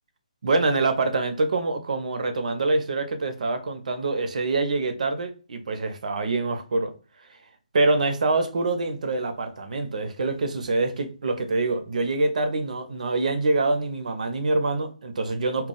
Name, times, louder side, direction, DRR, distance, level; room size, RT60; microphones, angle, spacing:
voice 1, 0.4-6.9 7.7-15.7, right 3 dB, 65° right, 0.6 m, -25 dB
2.2 x 2.0 x 3.7 m
hypercardioid pair, 155°, 4 cm